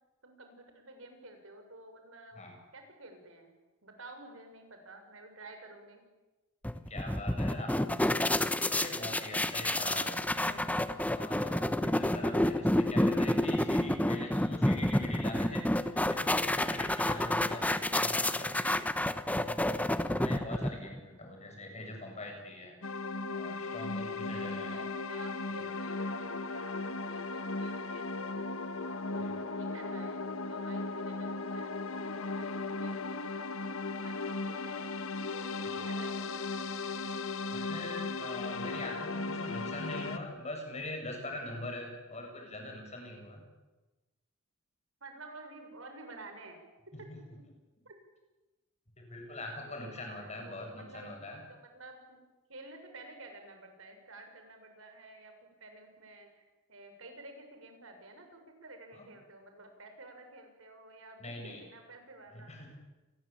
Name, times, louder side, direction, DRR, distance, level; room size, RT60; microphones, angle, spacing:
voice 1, 0.2-2.4 2.7-3.5 3.8-6.1 24.3-28.6 29.1-34.8 35.3-36.5 45.0-46.6 47.1-47.2 47.8-47.9 50.2-52.2 52.5-56.4 56.7-62.5, right 2 dB, 70° right, 5 dB, 6.6 m, -51 dB
sound 1, 6.6-21.0, left 1 dB, 5° left, 1.0 m, -29 dB
voice 2, 6.7-10.7 11.1-18.9 19.3-22.8 23.3-24.8 25.5-25.6 29.2-29.3 35.6-35.9 37.5-43.4 46.9-47.0 49.0-51.4 61.2-61.6 62.3-62.7, left 1 dB, 30° left, 2 dB, 8.0 m, -43 dB
sound 2, 22.8-40.2, left 3 dB, 75° left, 1.6 m, -37 dB
29.0 x 22.5 x 8.9 m, 1.1 s
head